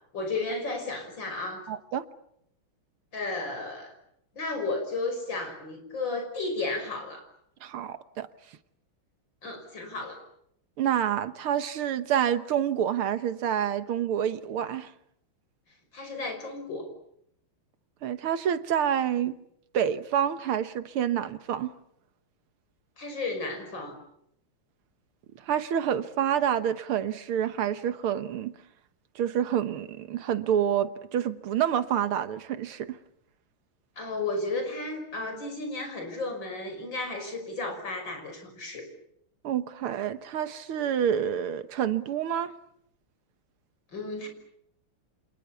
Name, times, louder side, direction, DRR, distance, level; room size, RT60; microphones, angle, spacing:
voice 1, 0.1-1.7 3.1-3.9 4.3-7.3 9.4-10.2 15.9-16.9 23.0-24.0 34.0-38.9 43.9-44.3, left 3 dB, 60° left, 6.4 m, -33 dB
voice 2, 1.7-2.0 7.6-8.3 10.8-14.9 18.0-19.4 19.7-21.7 25.5-28.5 29.2-33.0 39.4-42.5, right 9 dB, 90° right, 2.1 m, -28 dB
29.5 x 27.5 x 7.1 m
omnidirectional pair, 2.3 m